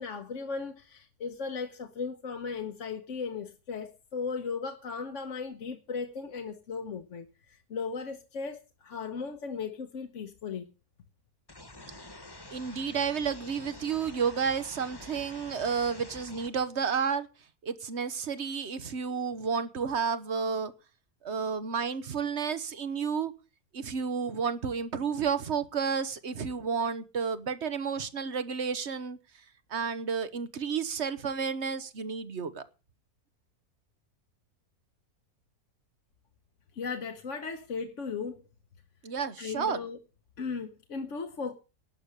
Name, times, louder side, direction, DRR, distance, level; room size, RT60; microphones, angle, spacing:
voice 1, 0.0-10.7 36.7-38.4 39.4-40.0 40.4-41.5, left 5 dB, 55° left, 1.3 m, -37 dB
sound 1, 11.5-16.5, left 2 dB, 15° left, 1.4 m, -47 dB
voice 2, 12.5-17.3 17.6-20.7 21.2-23.3 23.7-29.2 29.7-32.6 39.0-39.8, right 6 dB, 50° right, 1.3 m, -31 dB
11.5 x 6.8 x 9.7 m
omnidirectional pair, 1.6 m